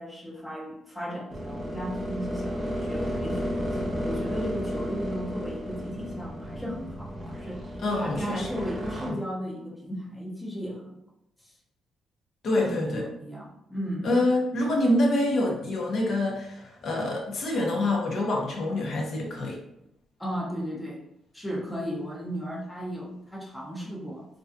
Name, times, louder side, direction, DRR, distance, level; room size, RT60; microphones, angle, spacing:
voice 1, 0.0-7.6 7.9-11.0 11.4-11.5 12.5-14.1 20.2-21.0 21.3-24.3, equal, 5° left, -3 dB, 0.6 m, -35 dB
sound 1, 1.3-9.1, equal, 30° right, 0.7 m, -33 dB
voice 2, 7.8-8.5 9.1-9.2 12.4-13.0 14.0-19.6, left 1 dB, 65° left, -1 dB, 0.6 m, -26 dB
2.4 x 2.2 x 2.5 m, 0.82 s
cardioid pair, 110°, 0 cm